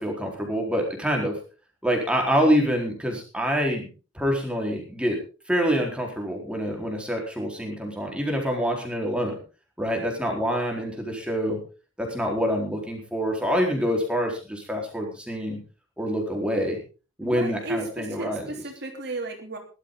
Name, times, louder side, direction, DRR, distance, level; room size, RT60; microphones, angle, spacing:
voice 1, 0.0-1.4 1.8-3.9 4.1-5.2 5.5-9.3 9.8-11.6 12.0-15.6 16.0-16.8 17.2-18.5, equal, 5° right, 1 dB, 4.3 m, -26 dB
voice 2, 17.2-19.6, right 2 dB, 55° right, 3 dB, 3.0 m, -33 dB
19.0 x 12.5 x 3.9 m, 0.35 s
head